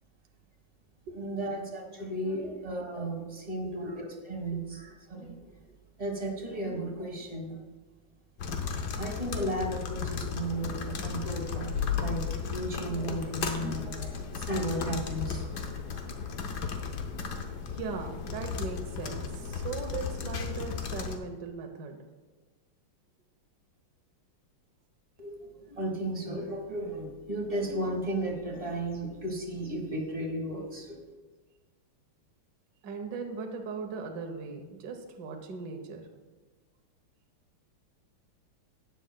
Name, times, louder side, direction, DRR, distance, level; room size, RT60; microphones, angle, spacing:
voice 1, 1.1-5.3 6.0-7.6 9.0-15.4 25.2-31.0, right 1 dB, 20° right, 1 dB, 1.2 m, -34 dB
sound 1, 8.4-21.2, left 6 dB, 60° left, 1.3 m, -35 dB
voice 2, 17.7-22.0 32.8-36.1, right 4 dB, 60° right, 4 dB, 1.4 m, -39 dB
17.0 x 7.4 x 2.2 m, 1.3 s
omnidirectional pair, 2.3 m